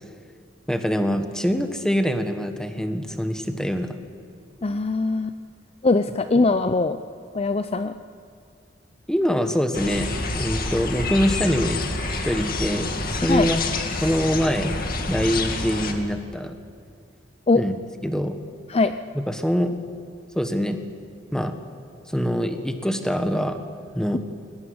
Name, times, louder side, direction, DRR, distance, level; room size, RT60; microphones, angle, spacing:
voice 1, 0.7-4.0 6.4-6.5 9.1-11.8 12.1-13.6 14.0-16.5 17.5-17.8 18.0-18.4 19.3-19.7 20.3-20.8 21.3-21.5 22.1-23.6 23.9-24.2, equal, 5° left, 7 dB, 1.5 m, -24 dB
voice 2, 4.6-5.3 5.8-7.0 7.3-7.9 13.3-13.5 17.5-17.6 18.7-18.9, left 3 dB, 35° left, 10 dB, 0.6 m, -21 dB
sound 1, 9.7-15.9, left 2 dB, 50° left, 2.1 m, -28 dB
21.5 x 18.0 x 9.6 m, 2.1 s
head